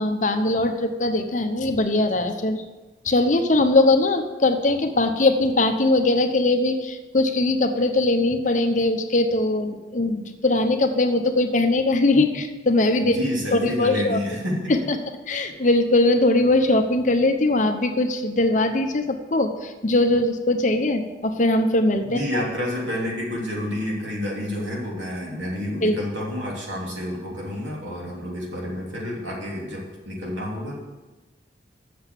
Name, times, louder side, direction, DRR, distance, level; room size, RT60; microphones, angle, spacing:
voice 1, 0.0-2.6 3.0-13.2 13.5-14.2 14.7-15.0 15.3-22.4 25.8-26.0, left 2 dB, 40° left, 6 dB, 0.8 m, -21 dB
voice 2, 13.1-14.7 22.0-30.8, left 1 dB, 90° right, -4 dB, 3.3 m, -29 dB
7.9 x 6.8 x 8.2 m, 1.2 s
head